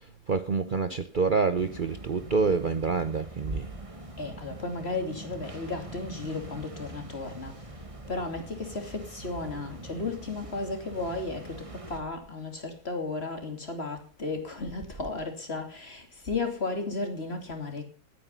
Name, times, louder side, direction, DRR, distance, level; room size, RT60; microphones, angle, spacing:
voice 1, 0.3-3.7, right 4 dB, 70° right, 0.4 m, -27 dB
sound 1, 1.5-12.0, right 1 dB, 15° right, 1.6 m, -43 dB
voice 2, 4.2-7.5 8.1-17.8, left 3 dB, 30° left, 3.1 m, -34 dB
17.5 x 9.4 x 5.5 m
omnidirectional pair, 2.2 m